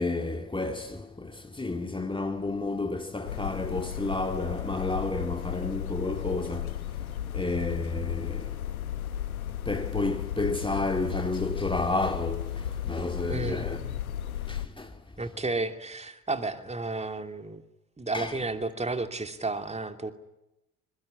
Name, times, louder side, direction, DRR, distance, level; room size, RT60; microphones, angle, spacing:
voice 1, 0.0-7.1 7.3-8.6 9.7-13.8 14.5-15.0 18.1-18.4, left 2 dB, 10° left, 2.2 m, -31 dB
sound 1, 3.2-14.7, left 10 dB, 85° left, 1.1 m, -34 dB
voice 2, 13.3-13.6 15.2-17.6 18.0-20.1, right 3 dB, 15° right, 2.8 m, -32 dB
25.5 x 23.0 x 9.9 m
figure-of-eight pair, 60°, 42 cm